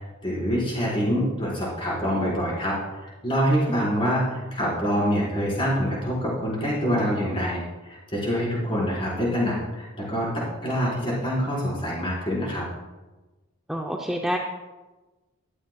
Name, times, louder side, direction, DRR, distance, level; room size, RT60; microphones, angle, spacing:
voice 1, 0.2-12.6, equal, 25° left, -6 dB, 4.4 m, -26 dB
voice 2, 13.7-14.4, equal, 5° right, 0 dB, 0.6 m, -28 dB
16.5 x 12.5 x 2.3 m, 1.2 s
head